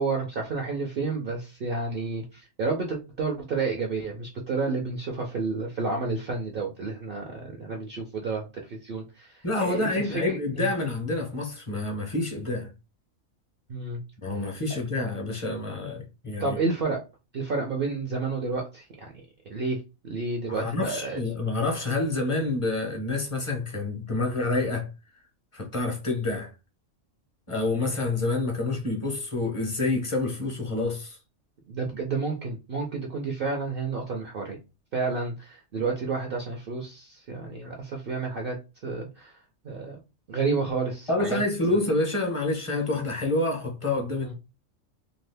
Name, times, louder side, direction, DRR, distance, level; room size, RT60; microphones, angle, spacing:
voice 1, 0.0-10.7 13.7-14.0 14.7-14.8 16.4-17.0 17.3-19.2 19.5-21.2 22.3-22.4 31.7-34.6 34.9-38.6 38.8-39.3 39.6-40.0 40.3-41.4 41.7-41.8 44.2-44.3, right 4 dB, 55° right, 0.7 m, -30 dB
voice 2, 9.4-12.7 14.2-16.6 20.5-24.9 25.5-26.5 27.5-31.2 41.1-44.3, left 2 dB, 30° left, 0.7 m, -28 dB
2.7 x 2.4 x 3.3 m
omnidirectional pair, 1.4 m